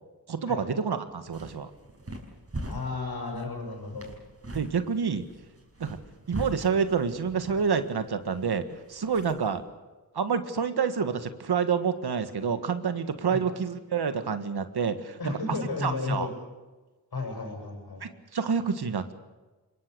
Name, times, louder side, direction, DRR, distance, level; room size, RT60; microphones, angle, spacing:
voice 1, 0.3-1.7 4.5-5.2 5.8-6.0 6.3-9.6 10.1-16.3 18.0-19.1, right 6 dB, 75° right, 10 dB, 1.7 m, -28 dB
sound 1, 1.1-9.6, right 1 dB, 35° right, 5.6 m, -42 dB
voice 2, 2.6-4.1 13.3-13.4 15.2-16.3 17.1-18.1, left 3 dB, 70° left, 2 dB, 7.6 m, -33 dB
25.5 x 22.0 x 6.9 m, 1.2 s
cardioid pair, 65°, 39 cm